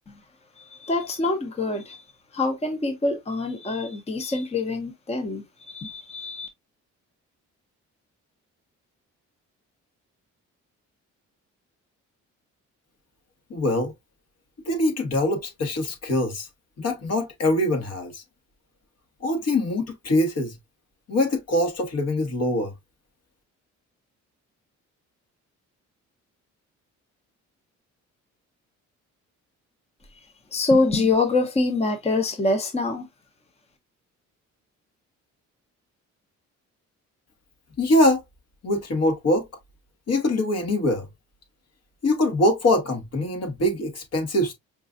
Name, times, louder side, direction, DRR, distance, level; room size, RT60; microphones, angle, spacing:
voice 1, 0.6-2.0 2.3-6.5 30.5-33.1, left 3 dB, 20° left, 0.8 m, -25 dB
voice 2, 13.5-13.9 14.6-16.5 16.8-18.2 19.2-20.6 21.1-22.7 37.8-38.2 38.6-39.5 40.1-41.1 42.0-44.5, left 1 dB, 55° left, 1.5 m, -23 dB
5.2 x 2.4 x 2.5 m
cardioid pair, 90°, 30 cm